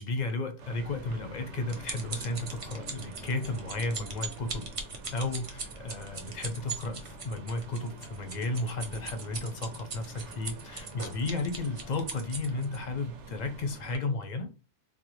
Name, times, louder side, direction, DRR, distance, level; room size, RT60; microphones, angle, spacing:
voice 1, 0.0-4.7 5.1-14.5, left 2 dB, 50° left, 0.6 m, -33 dB
sound 1, 0.6-14.0, right 2 dB, 85° right, 0.9 m, -47 dB
sound 2, 1.1-12.8 13.4-13.6 13.9-14.0, right 4 dB, 45° right, 0.4 m, -40 dB
3.6 x 2.2 x 3.0 m
omnidirectional pair, 1.2 m